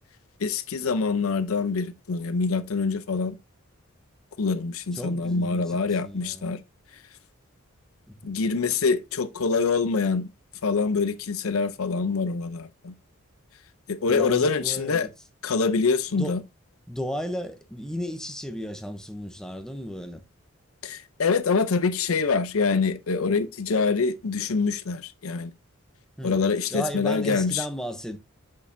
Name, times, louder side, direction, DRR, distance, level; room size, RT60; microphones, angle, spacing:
voice 1, 0.4-3.4 4.4-6.6 8.2-10.3 10.6-12.9 13.9-15.1 15.4-16.4 20.8-25.5 26.2-27.6, left 4 dB, 75° left, 0.6 m, -25 dB
voice 2, 4.9-6.5 8.1-8.4 14.1-15.1 16.1-16.4 16.9-20.2 26.2-26.4 26.7-28.2, equal, 5° left, 0.7 m, -34 dB
6.4 x 5.8 x 2.6 m
head